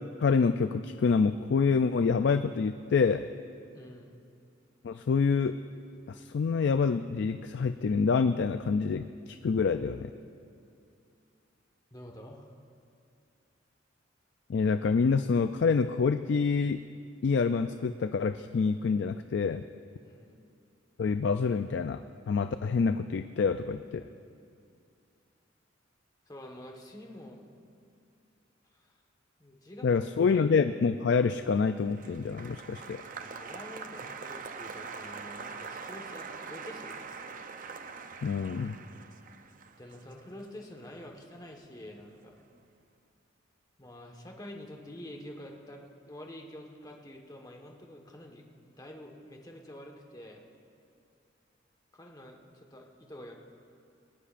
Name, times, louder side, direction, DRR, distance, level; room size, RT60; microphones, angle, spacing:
voice 1, 0.2-3.2 4.8-5.6 6.1-10.1 14.5-16.8 17.2-19.6 21.0-22.0 22.3-24.1 29.8-33.0 38.2-38.8, left 5 dB, 60° left, 9 dB, 0.4 m, -27 dB
voice 2, 3.7-4.2 11.9-12.5 20.0-20.4 26.3-27.4 28.7-29.0 29.4-30.4 33.2-37.1 39.8-42.4 43.8-50.4 51.9-53.3, left 1 dB, 20° left, 1 dB, 1.4 m, -47 dB
Applause, 31.4-41.8 42.0-42.7, right 5 dB, 45° right, 0.6 m, -44 dB
21.5 x 18.0 x 2.5 m, 2.4 s
head